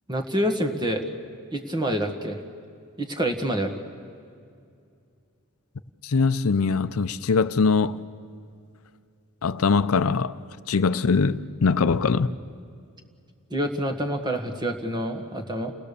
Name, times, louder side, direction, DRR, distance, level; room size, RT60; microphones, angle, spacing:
voice 1, 0.1-1.0 1.5-2.4 3.0-3.7 13.5-15.7, right 1 dB, 20° right, 1.6 m, -27 dB
voice 2, 6.0-8.0 9.4-10.4 10.7-12.3, left 4 dB, 75° left, 0.6 m, -22 dB
29.5 x 19.5 x 6.9 m
head